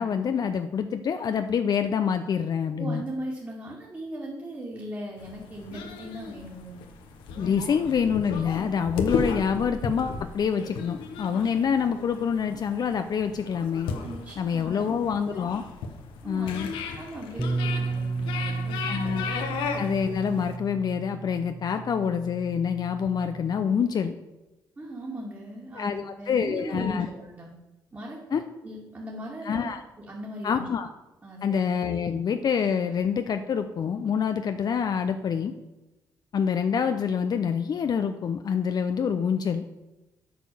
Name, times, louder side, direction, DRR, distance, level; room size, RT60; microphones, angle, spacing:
voice 1, 0.0-3.0 7.4-13.9 14.4-15.6 16.2-16.7 18.9-19.3 19.8-24.1 25.7-27.1 28.3-28.4 29.4-29.8 30.4-30.9 31.4-35.5 36.3-39.6, left 7 dB, 55° left, 8 dB, 0.6 m, -26 dB
voice 2, 2.8-6.8 14.0-15.0 16.2-16.7 16.9-19.2 24.8-27.5 27.9-28.4 28.6-30.7 31.2-31.6, right 1 dB, 30° right, -4 dB, 2.3 m, -38 dB
sound 1, 5.2-20.6, left 5 dB, 85° left, 0.9 m, -35 dB
Bass guitar, 17.4-23.6, right 3 dB, 5° right, 0.5 m, -33 dB
8.5 x 4.4 x 6.9 m, 1.0 s
supercardioid pair, 60°, 8 cm